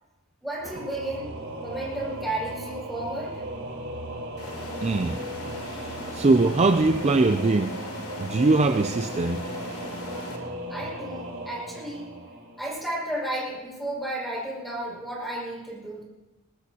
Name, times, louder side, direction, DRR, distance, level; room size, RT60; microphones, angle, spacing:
voice 1, 0.4-1.3 1.6-3.4 10.7-12.1 12.6-16.0, right 1 dB, ahead, 5.9 m, -33 dB
Singing / Musical instrument, 0.6-13.2, right 1 dB, 60° right, 3.8 m, -37 dB
sound 1, 4.4-10.4, left 2 dB, 85° left, 3.0 m, -39 dB
voice 2, 4.8-5.2 5.7-7.8 8.2-9.4, right 3 dB, 30° right, 0.4 m, -22 dB
21.5 x 19.0 x 2.9 m
head